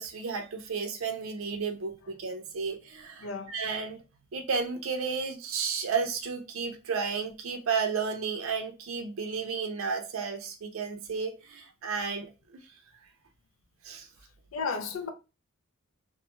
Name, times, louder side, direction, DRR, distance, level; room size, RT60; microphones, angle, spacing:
voice 1, 0.0-4.0 4.3-12.3 12.5-12.6 13.8-14.1, right 5 dB, 75° right, 0.5 m, -32 dB
voice 2, 3.2-3.5 14.5-15.1, left 5 dB, 75° left, 0.5 m, -33 dB
2.6 x 2.2 x 2.9 m
head